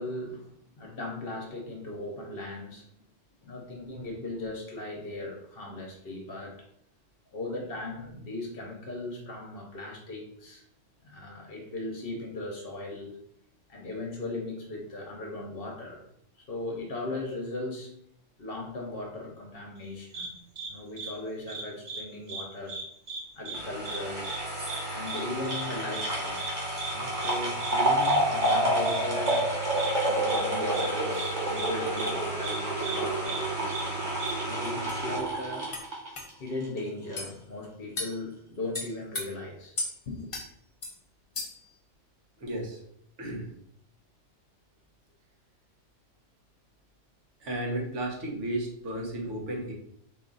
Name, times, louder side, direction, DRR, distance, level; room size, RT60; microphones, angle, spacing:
voice 1, 0.0-2.9 3.4-6.7 7.3-10.6 11.0-13.2 13.7-16.0 16.4-17.9 18.4-20.3 20.7-22.8 23.4-24.3 24.9-26.4 26.9-29.4 30.0-33.9 34.4-35.7 36.4-39.8 40.1-40.3, left 2 dB, 55° left, 0 dB, 0.9 m, -38 dB
sound 1, 20.1-20.3 20.6-20.7 21.0-21.1 21.5-22.0 22.3-22.4 22.7-23.2 23.5-23.6 23.9-24.0 24.2-24.4 24.7-24.8 25.1-25.2 25.5-25.6 25.9-26.1 26.4-26.5 26.8-26.9 27.2-27.3 27.6-27.7 28.0-28.2 28.4-28.6 28.9-29.0 29.3-29.4 29.8-29.9 30.3-30.4 30.7-30.9 31.2-31.3 31.6-31.7 32.0-32.1 32.4-32.6 32.8-33.0 33.2-33.4 33.7-33.8 34.2-34.3, right 4 dB, 55° right, 1.0 m, -36 dB
sound 2, 23.5-36.8 37.1-37.2, right 1 dB, 35° right, 1.3 m, -29 dB
sound 3, 34.3-34.4 34.9-35.0 35.7-35.9 36.2-36.3 37.2-37.3 38.0-38.2 38.7-39.3 39.8-39.9 40.3-40.5 40.8-41.0 41.4-41.7, left 2 dB, 35° left, 0.6 m, -34 dB
voice 2, 42.4-42.8 43.2-43.5 47.4-49.7, right 1 dB, 75° right, -1 dB, 1.4 m, -33 dB
3.9 x 2.4 x 3.9 m, 0.72 s
omnidirectional pair, 1.2 m